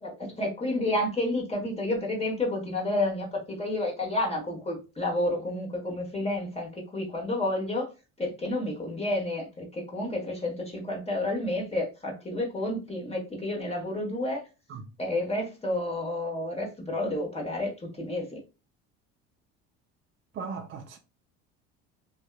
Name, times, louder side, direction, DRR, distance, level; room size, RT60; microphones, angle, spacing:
voice 1, 0.0-7.9 8.2-14.4 15.0-18.4, left 1 dB, 20° left, 1.2 m, -30 dB
voice 2, 20.3-21.0, right 5 dB, 35° right, 0.4 m, -37 dB
2.6 x 2.3 x 2.3 m
hypercardioid pair, 70°, 34 cm